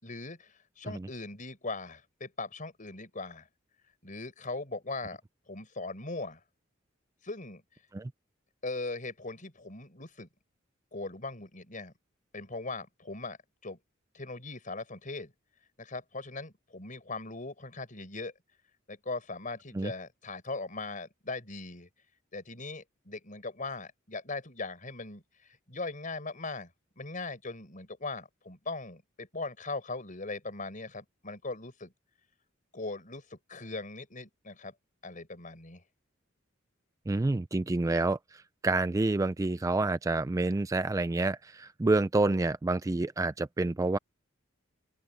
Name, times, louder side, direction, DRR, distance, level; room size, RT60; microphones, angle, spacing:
voice 1, 0.0-3.5 4.0-5.2 5.5-6.4 7.2-7.6 8.6-10.3 10.9-11.9 12.3-13.4 13.6-13.8 14.1-15.3 15.8-18.3 18.9-21.9 22.3-26.7 27.0-31.9 32.7-34.7 35.0-35.8, left 3 dB, 40° left, 5.2 m, -39 dB
voice 2, 37.1-44.0, right 2 dB, 15° right, 0.3 m, -28 dB
open air
head